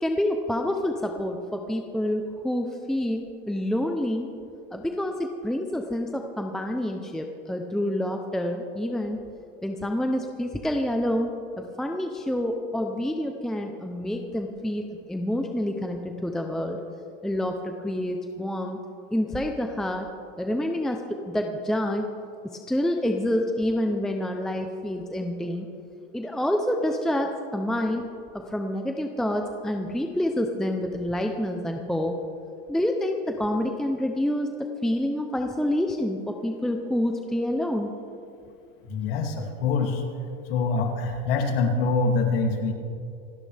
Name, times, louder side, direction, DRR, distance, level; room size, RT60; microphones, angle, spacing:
voice 1, 0.0-4.3 4.7-9.2 9.6-16.8 17.2-18.8 19.1-20.1 20.4-22.1 22.4-25.7 26.1-28.0 28.3-32.2 32.7-34.5 34.8-37.9, left 1 dB, ahead, 3 dB, 0.6 m, -27 dB
voice 2, 38.9-40.0 40.5-42.7, left 4 dB, 70° left, 2 dB, 2.7 m, -25 dB
27.0 x 12.0 x 3.4 m, 2.5 s
supercardioid pair, 155°, 29 cm